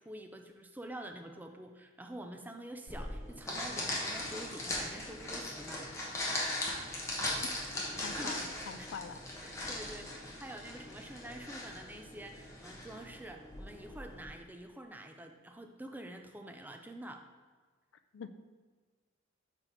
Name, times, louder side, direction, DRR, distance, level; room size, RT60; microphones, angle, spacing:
voice 1, 0.1-6.0 6.4-6.5 8.1-8.4 8.8-8.9 9.4-17.2, right 1 dB, 10° right, 4 dB, 0.4 m, -47 dB
sound 1, 2.9-14.3, left 1 dB, 15° left, 0.9 m, -39 dB
voice 2, 7.4-9.2 10.0-10.1 18.1-18.3, left 5 dB, 65° left, 10 dB, 0.4 m, -45 dB
6.0 x 4.4 x 3.9 m, 1.4 s
head